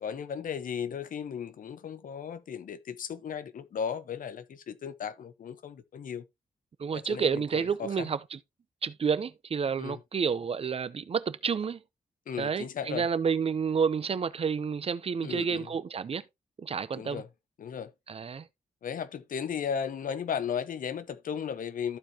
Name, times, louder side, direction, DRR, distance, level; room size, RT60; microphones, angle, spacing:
voice 1, 0.0-6.2 6.9-8.1 9.8-10.0 12.3-13.1 15.2-15.7 16.9-17.3 17.6-17.9 18.8-22.0, left 7 dB, 75° left, 0.9 m, -35 dB
voice 2, 6.8-8.4 8.8-11.8 12.4-16.2 16.6-17.2 18.1-18.5, right 6 dB, 45° right, 0.6 m, -30 dB
14.0 x 4.7 x 2.9 m
wide cardioid pair, 120°, 14 cm